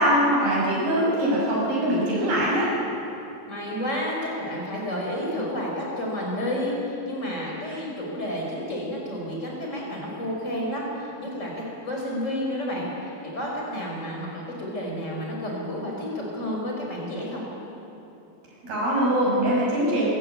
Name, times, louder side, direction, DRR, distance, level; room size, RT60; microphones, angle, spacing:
voice 1, 0.0-2.7 18.7-20.0, equal, 75° right, -5 dB, 8.4 m, -22 dB
voice 2, 3.5-14.3 14.6-17.4, equal, 20° left, -2 dB, 5.4 m, -30 dB
26.0 x 14.0 x 8.9 m, 3.0 s
omnidirectional pair, 4.4 m